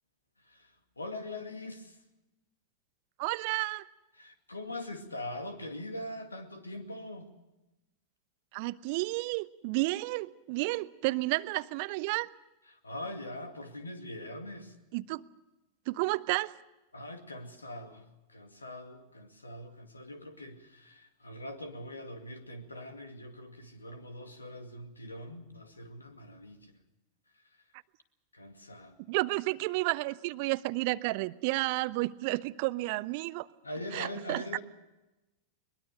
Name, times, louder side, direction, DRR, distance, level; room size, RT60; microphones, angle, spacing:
voice 1, 0.4-2.0 4.2-7.3 12.7-14.8 16.9-26.7 28.3-29.0 33.6-34.6, left 1 dB, 80° left, 7 dB, 2.2 m, -42 dB
voice 2, 3.2-3.8 8.5-12.3 14.9-15.2 15.9-16.5 29.1-33.5 33.9-34.4, right 22 dB, 45° right, 18 dB, 0.6 m, -31 dB
22.0 x 21.5 x 6.7 m, 1.0 s
figure-of-eight pair, 90°, 0 cm